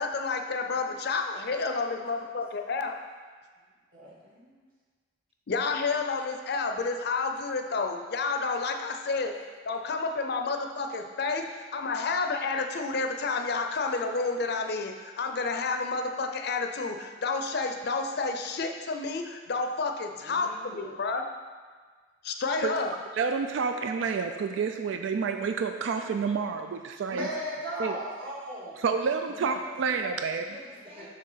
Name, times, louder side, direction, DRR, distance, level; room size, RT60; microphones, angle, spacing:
voice 1, 0.0-3.0 5.5-9.3 9.7-21.2 22.2-22.9, left 4 dB, 60° left, 5 dB, 0.5 m, -30 dB
voice 2, 1.4-2.4 3.6-3.7 4.1-4.7 11.4-11.5 20.1-21.0 29.3-30.2 30.5-31.1, left 1 dB, 30° right, -3 dB, 1.3 m, -49 dB
voice 3, 23.1-27.3 27.8-28.0 28.8-30.4, right 5 dB, 90° right, 6 dB, 0.3 m, -29 dB
voice 4, 27.1-28.8, equal, 50° right, -6 dB, 1.9 m, -35 dB
6.6 x 3.3 x 5.5 m, 1.5 s
head